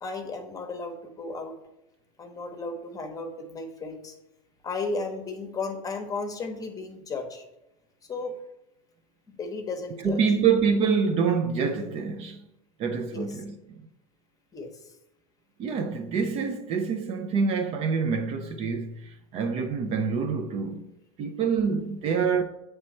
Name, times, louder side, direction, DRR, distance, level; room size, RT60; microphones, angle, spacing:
voice 1, 0.0-1.5 2.2-4.1 4.6-7.4 8.1-8.4 9.3-10.2 13.1-13.3 14.5-14.7 22.0-22.1, left 3 dB, 20° left, 0.9 m, -34 dB
voice 2, 10.0-12.5 12.8-13.5 15.6-20.9 21.2-22.4, right 5 dB, 35° right, 0.5 m, -26 dB
7.5 x 3.2 x 4.3 m
hypercardioid pair, 110°, 17 cm